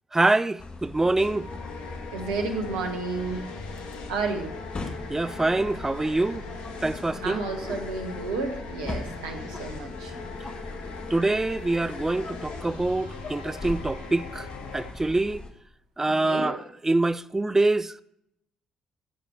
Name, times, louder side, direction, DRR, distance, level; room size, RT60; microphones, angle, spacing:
voice 1, 0.1-1.5 5.1-6.4 6.8-7.4 11.1-14.5 14.7-15.4 16.0-18.0, right 2 dB, 15° right, 0.4 m, -25 dB
sound 1, 0.6-15.5, left 2 dB, 35° left, 1.3 m, -40 dB
sound 2, 1.2-14.9, left 4 dB, 70° left, 1.0 m, -40 dB
voice 2, 2.1-3.5 4.1-4.6 7.2-10.1 16.1-16.6, right 3 dB, 70° right, 1.1 m, -31 dB
11.0 x 6.9 x 4.6 m
figure-of-eight pair, 45°, 3 cm